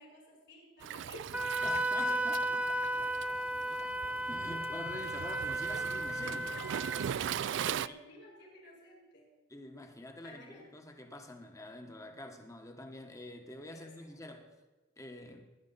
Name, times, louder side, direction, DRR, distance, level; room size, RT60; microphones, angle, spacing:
voice 1, 0.0-4.1 5.7-6.0 7.8-9.3 10.2-10.7 13.7-14.1, left 1 dB, 65° left, 5.6 m, -54 dB
Waves surf, 0.8-7.9, right 9 dB, 65° right, 0.3 m, -40 dB
Wind instrument woodwind instrument, 1.3-7.1, right 1 dB, 5° right, 0.5 m, -34 dB
voice 2, 1.6-2.4 4.3-8.0 9.5-14.5 15.0-15.4, left 1 dB, 15° left, 1.2 m, -47 dB
17.5 x 10.5 x 4.1 m
head